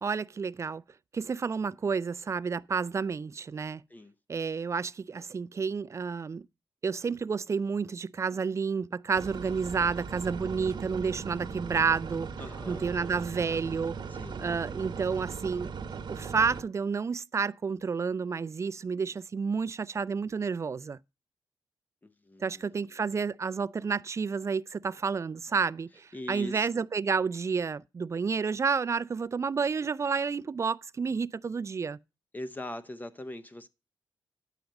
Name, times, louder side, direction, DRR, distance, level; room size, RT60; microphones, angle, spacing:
voice 1, 0.0-0.8 1.1-3.8 4.3-6.5 6.8-12.3 12.7-14.0 14.4-21.0 22.4-32.0, right 5 dB, 35° right, 0.4 m, -30 dB
sound 1, 9.1-16.6, right 5 dB, 60° right, 1.1 m, -39 dB
voice 2, 12.4-13.0 14.1-14.6 22.0-23.0 26.1-26.8 32.3-33.7, left 1 dB, 20° left, 0.7 m, -42 dB
9.0 x 5.9 x 5.2 m
cardioid pair, 100°, 9 cm